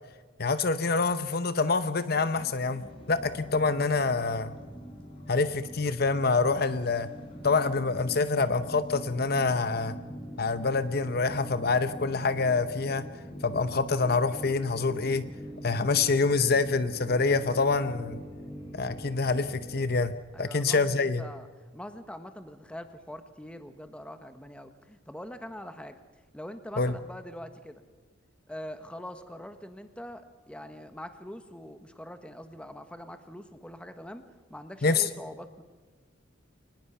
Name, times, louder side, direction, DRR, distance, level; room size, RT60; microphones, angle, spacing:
voice 1, 0.4-2.8 3.1-4.5 5.3-7.1 7.4-10.0 10.4-13.0 13.4-15.2 15.6-18.2 18.7-21.2 26.8-26.9 34.8-35.1, left 4 dB, 50° left, 12 dB, 0.8 m, -26 dB
sound 1, 1.9-20.0, equal, 25° left, 5.0 m, -43 dB
voice 2, 20.3-21.5 21.7-26.0 26.3-27.8 28.5-35.6, equal, 5° left, 9 dB, 1.3 m, -43 dB
23.0 x 20.0 x 5.8 m, 1.4 s
head